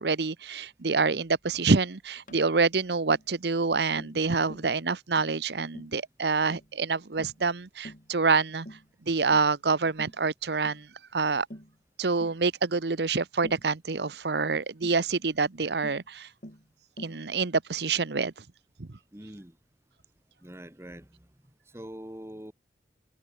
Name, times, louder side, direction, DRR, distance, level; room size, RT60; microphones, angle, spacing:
voice 1, 0.0-8.7 9.1-10.9 11.1-11.5 12.0-16.3 17.0-18.3 18.8-18.9, right 4 dB, 75° right, 0.9 m, -27 dB
Tap, 2.3-2.5 3.1-3.3 4.0-4.2 4.5-4.7 5.2-5.4 5.7-6.0 6.5-6.7 7.2-7.4 7.8-8.1 8.7-8.9 9.3-9.6 10.0-10.2 10.6-10.8 11.5-11.8 12.2-12.4 13.4-13.7 14.8-15.0 15.8-16.1 16.4-16.7 17.0-17.2, equal, 45° left, 7.7 m, -46 dB
voice 2, 19.1-19.6 20.4-21.3 21.6-22.5, equal, 15° right, 1.6 m, -44 dB
head